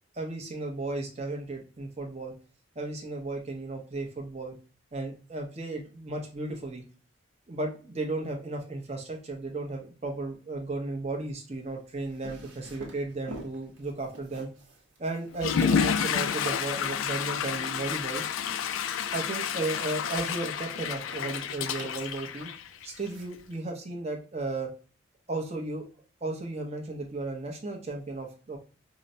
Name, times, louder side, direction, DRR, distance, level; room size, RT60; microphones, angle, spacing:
voice 1, 0.1-2.3 2.7-4.5 4.9-6.8 7.5-14.5 15.0-18.2 19.1-22.5 22.8-24.7 25.3-25.8 26.2-28.6, right 2 dB, 30° right, 1 dB, 0.7 m, -34 dB
sound 1, 11.6-23.6, right 2 dB, 70° right, 1.0 m, -48 dB
Water / Toilet flush, 15.3-23.1, left 7 dB, 80° left, 0.3 m, -30 dB
4.7 x 2.1 x 2.6 m, 0.37 s
head